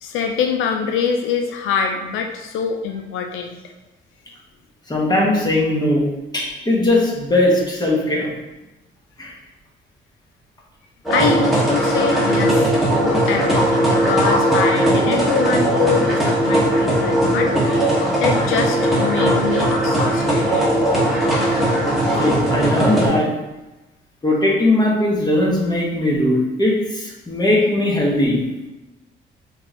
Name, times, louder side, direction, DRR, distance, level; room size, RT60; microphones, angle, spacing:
voice 1, 0.0-3.6 11.1-12.7 13.0-17.5 17.9-20.6, left 6 dB, 85° left, 4 dB, 0.5 m, -24 dB
voice 2, 4.9-6.0 6.3-8.3 9.2-9.3 22.2-23.3 24.2-28.4, left 1 dB, 20° left, -3 dB, 1.4 m, -19 dB
sound 1, 11.0-23.1, right 1 dB, ahead, 1.5 m, -18 dB
5.2 x 3.5 x 2.9 m, 1.0 s
cardioid pair, 90°, 20 cm